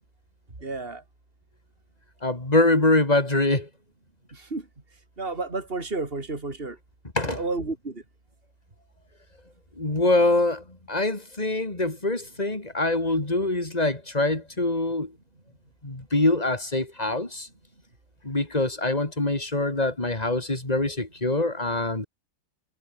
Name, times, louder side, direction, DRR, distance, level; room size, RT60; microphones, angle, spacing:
voice 1, 0.6-1.0 4.3-4.6 5.2-6.8 7.3-8.0, right 3 dB, 25° right, 4.1 m, -31 dB
voice 2, 2.2-3.7 7.2-7.4 9.8-15.1 15.8-17.5 18.2-22.1, left 2 dB, 20° left, 3.6 m, -24 dB
omnidirectional pair, 2.2 m